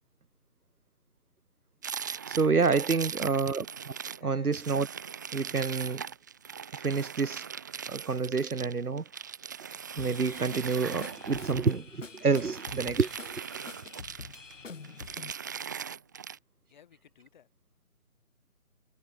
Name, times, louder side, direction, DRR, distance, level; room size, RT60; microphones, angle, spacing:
sound 1, 1.8-4.2 4.5-11.8 12.2-14.5 14.8-16.4, right 7 dB, 15° right, 1.0 m, -40 dB
voice 1, 2.3-3.9 4.2-4.9 5.3-6.0 6.7-7.4 7.9-9.0 10.0-13.4, right 4 dB, 80° right, 1.4 m, -28 dB
voice 2, 2.9-3.4 4.2-4.5 16.7-17.5, left 9 dB, 30° left, 7.2 m, -56 dB
Drum kit / Drum, 10.0-15.3, left 4 dB, 55° left, 3.4 m, -46 dB
figure-of-eight pair, 155°, 44 cm